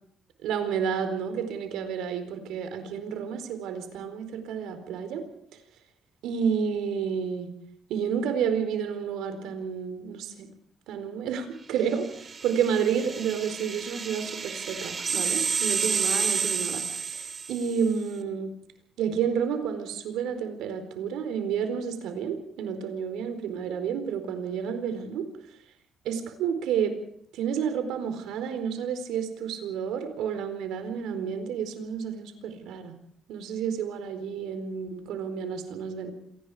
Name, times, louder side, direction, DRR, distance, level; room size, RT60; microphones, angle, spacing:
voice 1, 0.4-5.2 6.2-7.5 7.9-10.5 10.9-12.1 12.4-16.8 17.5-18.5 19.0-25.3 26.0-26.9 27.3-32.9 33.3-36.1, right 7 dB, 90° right, 8 dB, 4.4 m, -30 dB
sound 1, 11.9-17.9, right 5 dB, 40° right, 2.3 m, -30 dB
27.0 x 19.0 x 5.0 m, 0.68 s
cardioid pair, 90°, 0 cm